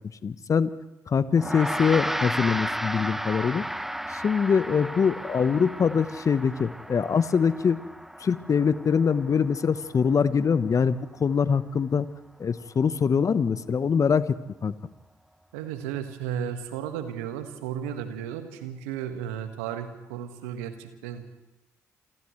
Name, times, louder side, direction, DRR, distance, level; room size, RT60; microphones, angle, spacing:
voice 1, 0.2-0.7 1.1-3.6 4.1-7.8 8.2-12.1 12.4-14.4 14.6-14.7, left 6 dB, 45° left, 14 dB, 1.1 m, -23 dB
Gong, 1.4-11.0, equal, 5° right, 0.7 m, -34 dB
voice 2, 15.5-21.2, right 9 dB, 80° right, 7 dB, 1.7 m, -34 dB
28.5 x 28.0 x 3.3 m, 0.99 s
hypercardioid pair, 40°, 8 cm